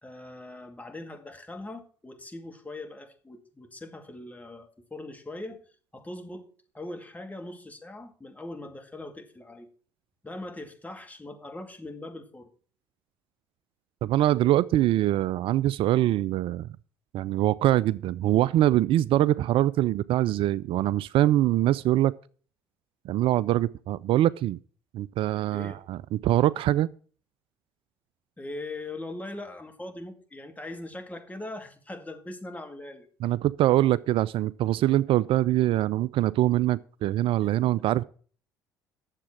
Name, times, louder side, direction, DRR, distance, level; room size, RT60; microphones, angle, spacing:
voice 1, 0.0-5.6 5.9-9.7 10.2-12.5 25.5-25.8 28.4-33.1 37.4-37.5, left 2 dB, 15° left, 2.3 m, -41 dB
voice 2, 14.0-16.7 17.1-22.1 23.0-24.6 24.9-26.9 33.2-38.0, right 14 dB, 60° right, 0.4 m, -23 dB
10.0 x 7.4 x 5.8 m
hypercardioid pair, 60°, 10 cm